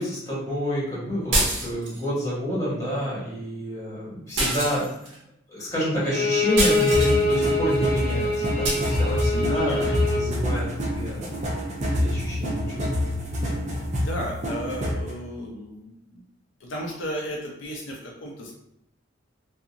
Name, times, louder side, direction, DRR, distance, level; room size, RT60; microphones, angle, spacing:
voice 1, 0.0-5.1 5.5-11.3 11.8-12.9, equal, 15° left, -8 dB, 1.3 m, -29 dB
sound 1, 1.3-2.0 4.4-5.1 6.6-7.2 8.6-8.9, right 1 dB, 85° right, 0.8 m, -25 dB
Bowed string instrument, 6.0-10.3, left 2 dB, 45° left, 0.7 m, -24 dB
sound 2, 6.9-15.1, left 1 dB, 40° right, 0.5 m, -27 dB
voice 2, 9.3-10.0 13.7-16.2 16.6-18.5, equal, 75° left, -1 dB, 0.5 m, -34 dB
2.8 x 2.3 x 2.5 m, 0.77 s
head